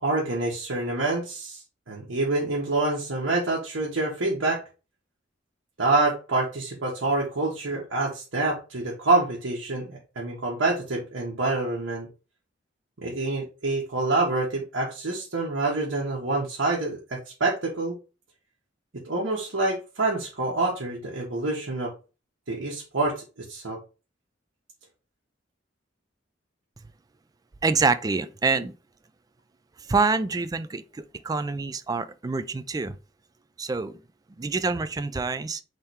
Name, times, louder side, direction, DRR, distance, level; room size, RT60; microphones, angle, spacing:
voice 1, 0.0-1.6 1.9-4.6 5.8-12.1 13.0-18.0 19.0-21.9 22.5-23.2 23.5-23.8, right 2 dB, 80° right, 1.3 m, -26 dB
voice 2, 27.6-28.7 29.9-33.0 33.6-34.0 34.4-35.6, right 4 dB, 20° right, 0.3 m, -26 dB
3.7 x 3.3 x 4.2 m
head